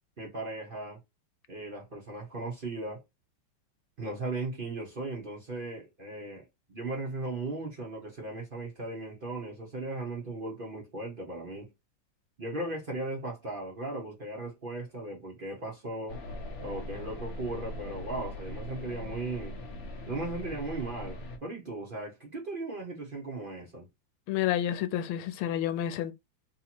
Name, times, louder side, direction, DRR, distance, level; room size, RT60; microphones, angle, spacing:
voice 1, 0.2-1.0 1.5-3.0 4.0-11.7 12.4-16.2 16.6-19.6 20.1-23.9, right 2 dB, 50° right, 0.6 m, -37 dB
sound 1, 16.1-21.4, left 1 dB, 70° left, 0.6 m, -41 dB
voice 2, 24.3-26.1, left 11 dB, 90° left, 1.4 m, -29 dB
3.3 x 2.8 x 4.2 m
omnidirectional pair, 2.2 m